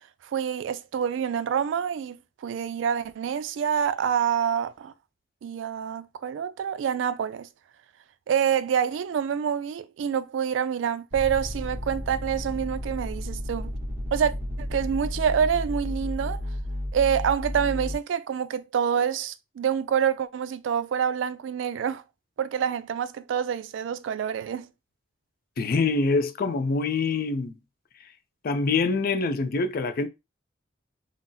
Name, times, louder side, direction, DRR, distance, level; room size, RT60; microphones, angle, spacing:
voice 1, 0.2-4.9 5.4-7.5 8.3-13.7 14.1-16.4 16.9-22.0 22.4-24.7, right 8 dB, 75° right, 0.3 m, -27 dB
sound 1, 11.1-18.0, left 1 dB, 35° right, 0.8 m, -32 dB
voice 2, 25.6-27.5 28.4-30.1, left 3 dB, 50° left, 0.4 m, -25 dB
3.7 x 2.0 x 2.6 m
head